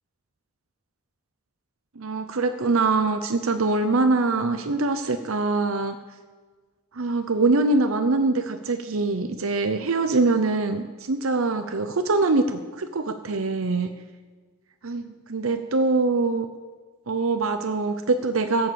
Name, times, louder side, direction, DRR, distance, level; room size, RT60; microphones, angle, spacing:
voice 1, 2.0-6.0 6.9-13.9 14.8-16.5 17.1-18.7, right 3 dB, 75° right, 8 dB, 0.8 m, -23 dB
17.0 x 7.2 x 7.0 m, 1.4 s
head